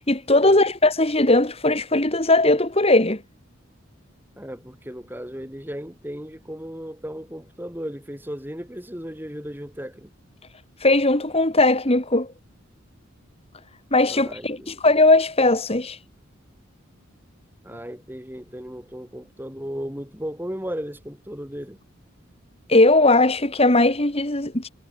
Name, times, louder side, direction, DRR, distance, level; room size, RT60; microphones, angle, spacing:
voice 1, 0.0-3.2 10.8-12.3 13.9-16.0 22.7-24.7, left 2 dB, 30° left, 2.6 m, -19 dB
voice 2, 4.4-10.1 14.1-14.7 17.6-21.8, equal, 10° right, 5.6 m, -35 dB
head